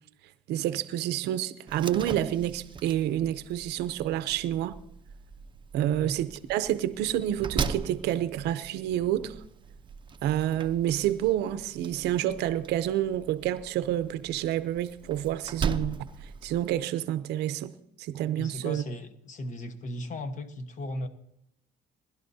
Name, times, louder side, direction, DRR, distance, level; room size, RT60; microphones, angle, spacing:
voice 1, 0.5-4.8 5.7-9.4 10.2-16.0 16.4-17.7 18.0-18.8, right 12 dB, 80° right, 0.6 m, -28 dB
Slam, 1.7-16.7, right 5 dB, 30° right, 0.7 m, -39 dB
voice 2, 18.4-21.1, left 1 dB, 45° left, 1.3 m, -36 dB
21.0 x 11.5 x 2.7 m
cardioid pair, 110°, 17 cm